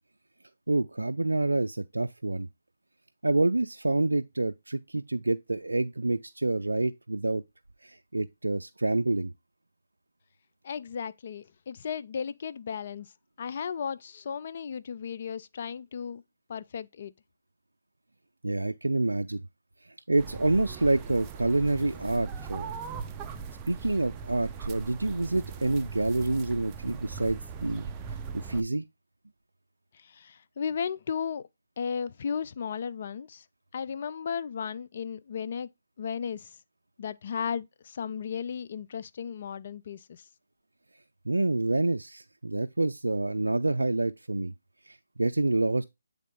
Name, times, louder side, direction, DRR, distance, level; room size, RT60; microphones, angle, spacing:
voice 1, 0.7-2.5 3.2-7.4 7.8-9.3 18.4-19.4 20.1-22.7 23.7-27.9 28.3-28.8 41.3-44.5 44.9-45.8, right 2 dB, 90° right, 0.3 m, -27 dB
voice 2, 10.6-13.1 13.4-16.2 16.5-17.1 30.1-31.4 31.8-33.4 33.7-35.7 36.0-36.5 37.0-40.0, left 7 dB, 45° left, 0.4 m, -35 dB
sound 1, 20.2-28.6, right 6 dB, 20° right, 0.5 m, -39 dB
8.3 x 3.6 x 3.6 m
figure-of-eight pair, 150°, 0 cm